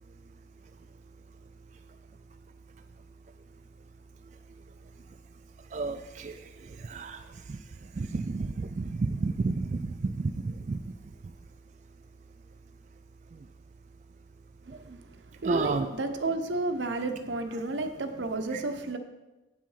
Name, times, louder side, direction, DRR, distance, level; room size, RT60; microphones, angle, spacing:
voice 1, 5.7-6.4 6.8-7.2 7.5-7.6 8.0-10.8 15.4-15.9 18.5-18.6, right 3 dB, 40° right, 7 dB, 0.3 m, -31 dB
voice 2, 15.4-19.0, right 2 dB, 75° right, 7 dB, 0.9 m, -31 dB
8.0 x 7.5 x 5.6 m, 1.1 s
head